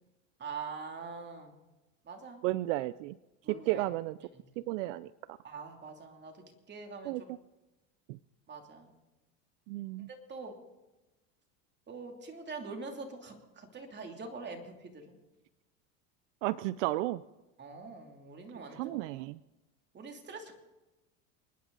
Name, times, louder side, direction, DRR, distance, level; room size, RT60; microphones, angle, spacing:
voice 1, 0.4-1.5 2.1-2.4 3.4-3.9 5.4-6.3 6.7-7.1 8.5-8.9 10.3-10.5 11.9-15.2 17.6-19.1 19.9-20.5, right 4 dB, 30° right, 3 dB, 2.9 m, -44 dB
voice 2, 2.4-3.2 3.5-4.2 4.7-5.1 7.0-7.4 8.1-8.2 9.7-10.1 16.4-17.2 18.7-19.4, right 17 dB, 75° right, 18 dB, 0.5 m, -33 dB
28.5 x 10.0 x 4.0 m, 1.1 s
supercardioid pair, 105°, 38 cm